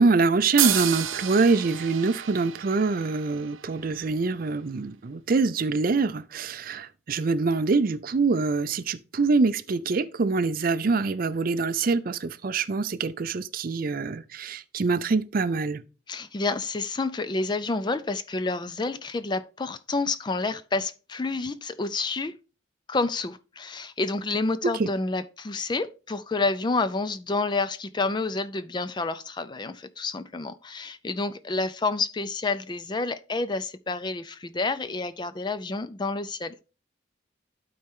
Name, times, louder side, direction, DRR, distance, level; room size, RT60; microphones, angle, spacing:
voice 1, 0.0-15.8 24.8-24.9, right 4 dB, 45° right, 0.4 m, -25 dB
sound 1, 0.6-4.1, right 11 dB, 80° right, 0.8 m, -30 dB
voice 2, 16.1-22.3 22.9-36.5, left 3 dB, 20° left, 0.4 m, -29 dB
12.0 x 4.3 x 3.6 m
head